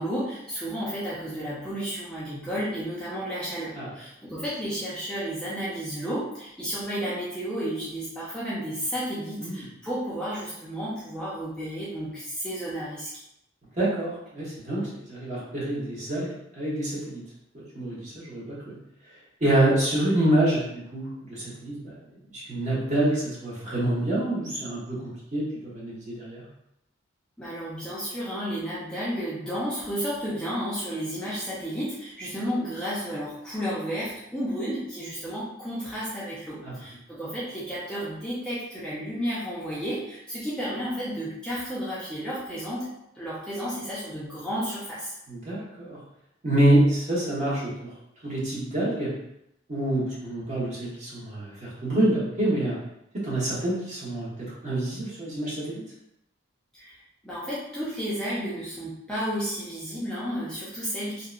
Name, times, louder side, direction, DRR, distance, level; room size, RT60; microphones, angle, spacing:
voice 1, 0.0-13.2 27.4-42.9 43.2-45.1 56.7-61.3, equal, 5° left, -9 dB, 0.5 m, -32 dB
voice 2, 13.8-17.2 17.5-18.7 19.4-21.9 22.3-26.4 36.6-36.7 45.3-46.0 46.4-47.9 48.2-49.1 49.7-52.8 53.2-54.3 54.6-55.8, right 1 dB, 40° right, -7 dB, 0.9 m, -26 dB
2.7 x 2.1 x 2.3 m, 0.80 s
head